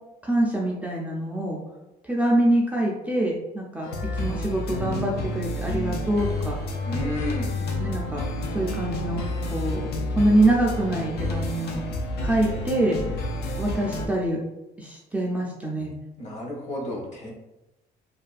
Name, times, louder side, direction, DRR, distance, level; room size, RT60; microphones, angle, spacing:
voice 1, 0.2-1.6 2.0-6.5 7.8-8.2 8.5-9.2 9.5-9.9 10.1-11.8 12.2-13.0 13.6-14.4 14.8-15.9, right 1 dB, 10° right, -4 dB, 0.3 m, -25 dB
sound 1, 3.8-14.1, left 1 dB, 80° left, 0.4 m, -29 dB
voice 2, 6.8-7.6 16.2-17.3, left 1 dB, 45° left, -2 dB, 0.9 m, -32 dB
2.4 x 2.3 x 2.4 m, 0.93 s
cardioid pair, 110°, 17 cm